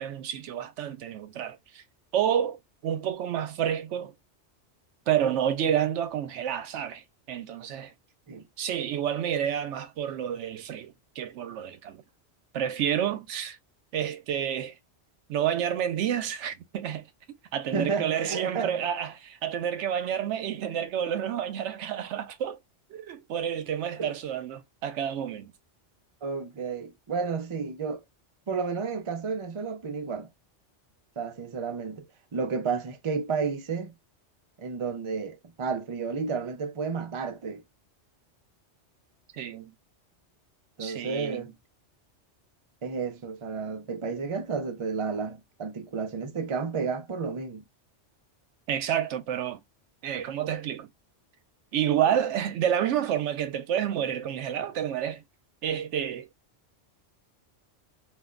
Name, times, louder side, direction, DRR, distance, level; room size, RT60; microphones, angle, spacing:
voice 1, 0.0-1.8 2.1-4.1 5.1-7.9 8.6-12.0 12.5-13.6 13.9-14.7 15.3-17.1 17.5-22.6 22.9-25.5 39.3-39.7 40.8-41.5 48.7-49.6 50.0-50.9 51.7-55.2 55.6-56.3, right 9 dB, 75° right, 0.9 m, -29 dB
voice 2, 17.7-18.7 24.0-24.1 26.2-28.0 28.5-30.3 31.2-32.0 32.3-33.9 34.6-37.6 40.8-41.5 42.8-47.6, right 5 dB, 50° right, 0.3 m, -31 dB
2.5 x 2.0 x 3.6 m
omnidirectional pair, 1.2 m